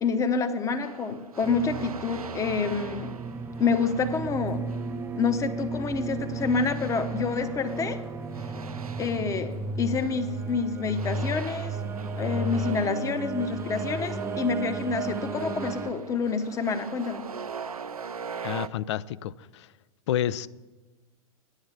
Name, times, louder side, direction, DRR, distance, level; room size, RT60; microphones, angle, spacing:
voice 1, 0.0-3.1 3.6-4.6 5.1-8.0 9.0-11.8 12.2-17.2, left 5 dB, 15° left, 9 dB, 0.8 m, -28 dB
sound 1, 0.8-5.0 6.4-10.5 10.9-18.7, right 6 dB, 80° right, 0.6 m, -42 dB
sound 2, 1.4-15.9, right 3 dB, 15° right, 0.5 m, -34 dB
voice 2, 18.4-19.7 20.1-20.5, left 11 dB, 50° left, 18 dB, 0.4 m, -29 dB
9.5 x 8.1 x 7.0 m, 1.2 s
figure-of-eight pair, 100°, 19 cm